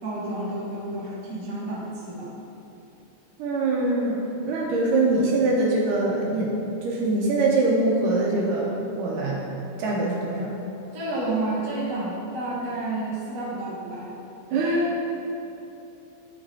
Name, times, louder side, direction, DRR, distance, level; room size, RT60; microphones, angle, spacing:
voice 1, 0.0-2.3 10.9-14.1, right 2 dB, 40° right, -7 dB, 1.3 m, -30 dB
voice 2, 3.4-4.2 4.5-6.6 6.8-9.5 9.8-10.5 14.5-15.2, right 2 dB, 75° right, -3 dB, 2.3 m, -23 dB
11.5 x 6.1 x 2.7 m, 2.9 s
omnidirectional pair, 4.0 m